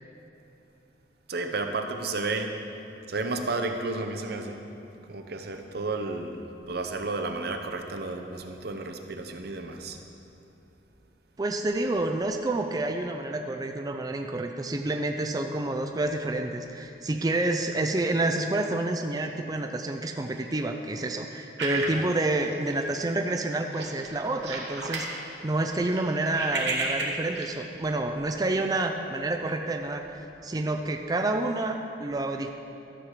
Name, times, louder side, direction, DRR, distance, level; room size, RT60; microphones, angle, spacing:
voice 1, 1.3-2.5 3.1-4.6 5.1-10.0 21.8-22.1, right 3 dB, 65° right, 5 dB, 0.8 m, -32 dB
voice 2, 11.4-32.5, right 2 dB, 20° right, 4 dB, 0.4 m, -29 dB
sound 1, 21.6-22.9 23.3-23.4 23.7-25.1 25.5-27.5, right 2 dB, 80° right, 1.5 m, -33 dB
12.5 x 7.5 x 4.9 m, 2.9 s
head